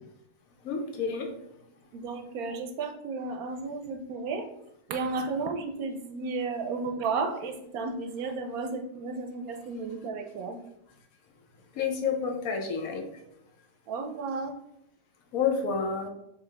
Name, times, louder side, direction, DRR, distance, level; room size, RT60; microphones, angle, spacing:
voice 1, 0.6-1.3 11.7-13.1 15.3-16.1, left 6 dB, 65° left, 4 dB, 1.0 m, -29 dB
voice 2, 1.9-4.5 4.9-10.6 13.9-14.5, right 4 dB, 70° right, 5 dB, 1.0 m, -33 dB
4.6 x 3.5 x 3.3 m, 0.78 s
omnidirectional pair, 1.7 m